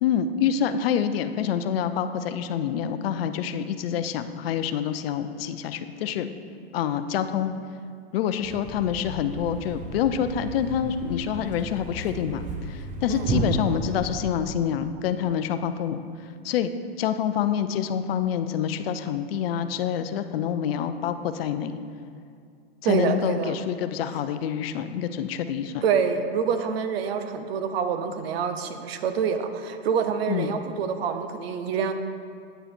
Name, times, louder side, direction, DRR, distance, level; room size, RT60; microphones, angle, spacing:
voice 1, 0.0-6.3 6.7-7.5 8.1-16.7 17.0-21.8 22.9-25.8 30.3-30.6, left 8 dB, 65° left, 10 dB, 0.6 m, -27 dB
Thump thud, 8.4-14.6, right 2 dB, 25° right, 0.7 m, -33 dB
voice 2, 22.8-23.5 25.8-31.9, right 6 dB, 65° right, 8 dB, 0.9 m, -26 dB
9.1 x 6.7 x 4.4 m, 2.3 s
hypercardioid pair, 130°, 32 cm